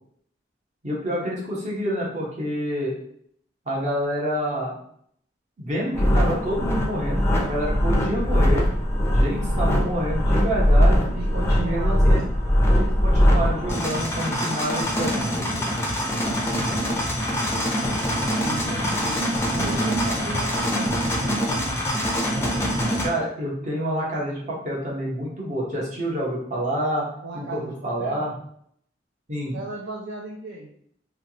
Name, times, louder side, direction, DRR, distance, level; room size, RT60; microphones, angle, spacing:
voice 1, 0.8-2.9 3.7-4.8 5.6-8.7 9.1-11.0 11.5-12.2 12.8-15.7 23.0-27.0 27.3-28.3 29.3-29.5, equal, 40° right, -4 dB, 1.0 m, -28 dB
sound 1, 5.9-23.1, equal, 15° left, 0.5 m, -22 dB
voice 2, 11.1-12.3 18.4-19.2 19.5-21.7 27.2-28.3 29.5-30.7, right 3 dB, 75° right, -2 dB, 0.5 m, -36 dB
3.2 x 2.3 x 2.8 m, 0.66 s
head